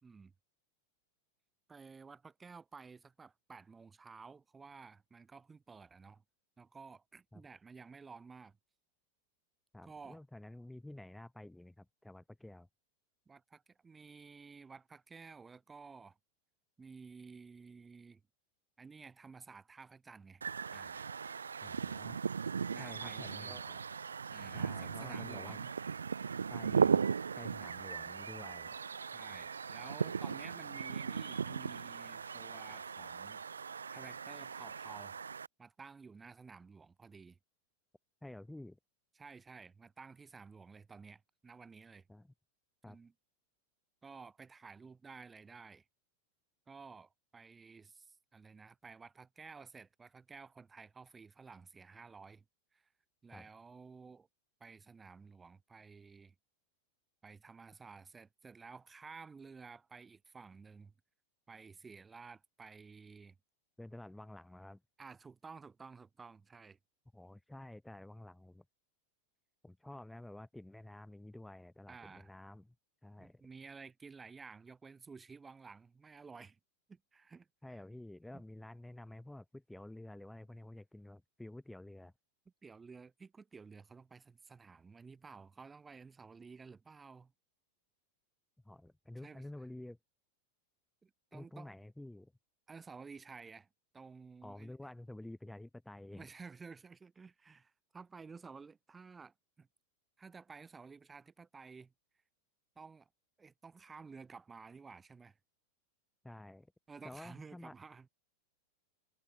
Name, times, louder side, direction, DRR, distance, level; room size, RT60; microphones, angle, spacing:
voice 1, 0.0-0.3 1.7-6.2 6.6-8.6 9.8-10.2 13.3-16.2 16.8-18.2 18.8-20.4 20.7-21.2 22.7-23.6 24.3-25.7 29.1-33.4 33.9-35.2 35.6-37.4 39.1-42.0 42.9-43.1 44.0-45.8 46.7-52.4 52.7-52.9 53.2-54.3 54.6-56.3 57.2-60.9 61.5-63.4 65.0-66.8 71.9-72.3 73.2-76.6 76.9-77.8 78.3-78.4 82.6-87.3 89.2-89.5 91.0-91.8 92.7-93.7 93.9-94.7 96.1-99.7 100.2-101.9 102.8-103.1 103.4-105.4 106.9-108.1, right 5 dB, 15° right, 4.6 m, -53 dB
voice 2, 9.7-12.7 21.6-22.2 22.8-23.8 24.5-25.6 26.5-27.0 27.3-28.8 38.2-38.8 42.1-42.3 42.8-43.0 53.3-53.5 63.8-64.8 67.1-68.6 69.6-72.7 73.0-73.4 77.6-82.1 88.6-90.0 91.3-92.3 94.4-96.3 106.2-106.7 107.0-107.7, left 1 dB, 5° left, 3.8 m, -50 dB
sound 1, 20.4-35.5, right 6 dB, 70° right, 0.4 m, -37 dB
figure-of-eight pair, 90°, 0 cm